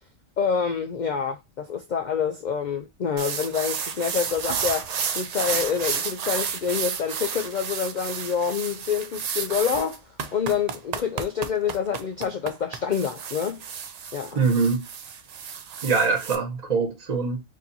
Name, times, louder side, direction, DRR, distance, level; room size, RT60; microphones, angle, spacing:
voice 1, 0.4-10.0 10.3-13.6 14.1-14.4, left 7 dB, 60° left, 0.4 m, -27 dB
sound 1, 3.2-16.3, right 7 dB, 85° right, 0.3 m, -31 dB
voice 2, 14.3-14.8 15.8-17.4, right 4 dB, 35° right, 1.1 m, -23 dB
4.8 x 2.7 x 2.7 m
omnidirectional pair, 1.3 m